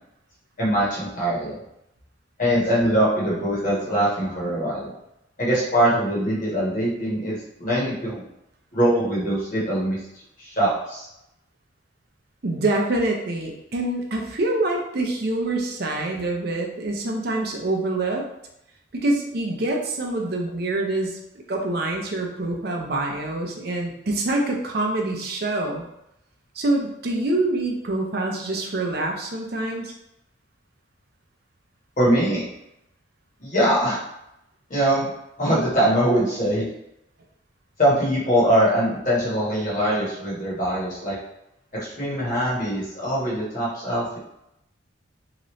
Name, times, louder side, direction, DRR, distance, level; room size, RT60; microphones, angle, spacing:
voice 1, 0.6-1.5 2.4-4.9 5.4-8.3 8.7-10.0 10.4-11.1 32.0-32.4 33.4-34.0 34.7-35.1 35.4-36.7 37.8-41.2 41.7-44.2, right 1 dB, 40° left, -6 dB, 1.2 m, -22 dB
voice 2, 12.4-18.2 19.0-21.1 21.5-25.8 26.6-29.9, right 2 dB, 50° right, 1 dB, 0.5 m, -25 dB
2.9 x 2.6 x 3.0 m, 0.84 s
head